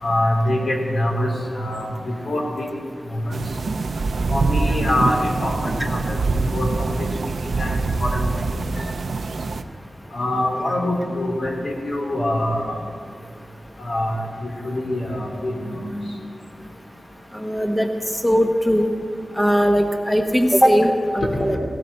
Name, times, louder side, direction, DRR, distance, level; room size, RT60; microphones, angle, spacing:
voice 1, 0.0-2.7 3.1-3.4 4.3-6.2 6.5-6.7 7.6-8.3 8.7-8.8 10.1-12.8 13.8-15.9 21.3-21.6, left 1 dB, 65° left, 0 dB, 3.1 m, -24 dB
sound 1, 3.3-9.6, right 3 dB, 70° right, 0.6 m, -24 dB
voice 2, 17.3-17.9 18.2-18.9 19.4-21.6, equal, 5° left, 4 dB, 1.2 m, -19 dB
17.5 x 16.5 x 4.3 m, 2.3 s
wide cardioid pair, 130°, 0 cm